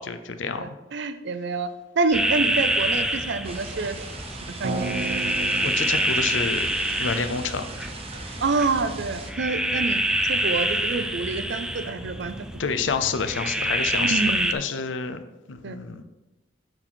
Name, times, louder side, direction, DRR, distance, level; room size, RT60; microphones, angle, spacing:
voice 1, 0.0-0.7 5.6-6.7 7.0-7.6 12.6-15.2 15.5-16.0, left 5 dB, 75° left, 9 dB, 0.6 m, -28 dB
voice 2, 0.6-1.7 2.0-4.0 4.6-4.9 8.4-10.0 10.3-12.5 14.0-14.5 15.6-15.8, right 4 dB, 65° right, 11 dB, 0.5 m, -27 dB
sound 1, 2.1-14.5, right 1 dB, 5° right, 0.3 m, -27 dB
sound 2, 3.4-9.3, right 3 dB, 30° right, 0.8 m, -39 dB
sound 3, 4.6-8.8, right 3 dB, 80° right, 0.8 m, -34 dB
8.0 x 4.3 x 4.3 m, 1.0 s
head